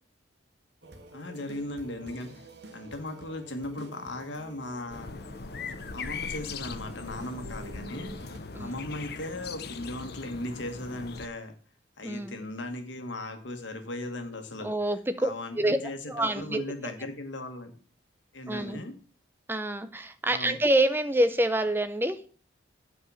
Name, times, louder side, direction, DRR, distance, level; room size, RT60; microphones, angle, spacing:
sound 1, 0.8-8.4, right 1 dB, 60° right, 1.3 m, -49 dB
voice 1, 1.1-5.1 5.9-11.5 12.0-14.7 15.2-17.7 18.3-18.9 20.2-20.6, left 1 dB, 70° left, 6 dB, 1.6 m, -38 dB
sound 2, 4.9-11.3, left 4 dB, 55° left, 0.7 m, -39 dB
voice 2, 12.0-12.4 14.6-15.8 16.1-16.6 18.5-18.8 19.5-22.2, right 1 dB, 10° right, 10 dB, 0.6 m, -27 dB
8.6 x 4.9 x 7.0 m, 0.40 s
head